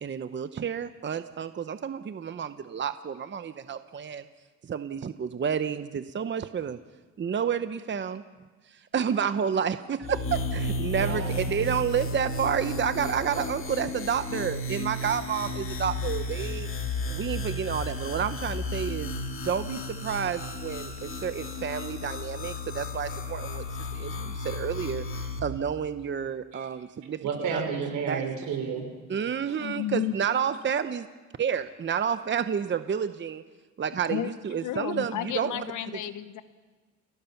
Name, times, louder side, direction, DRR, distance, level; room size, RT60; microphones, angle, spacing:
voice 1, 0.0-4.3 4.6-6.8 7.2-8.2 8.6-23.6 23.9-27.6 28.1-28.2 29.1-31.1 31.4-33.4 33.8-35.6 35.9-36.0, right 7 dB, 40° right, 10 dB, 0.9 m, -30 dB
sound 1, 10.0-25.4, left 2 dB, 45° left, 2.9 m, -33 dB
voice 2, 10.9-11.6 26.5-26.7 27.2-28.9 29.5-29.6, right 6 dB, 85° right, 3 dB, 5.8 m, -32 dB
voice 3, 29.6-30.1 34.1-34.3 34.6-36.4, left 11 dB, 80° left, 11 dB, 1.4 m, -32 dB
29.0 x 18.0 x 5.9 m, 1.4 s
cardioid pair, 90°, 30 cm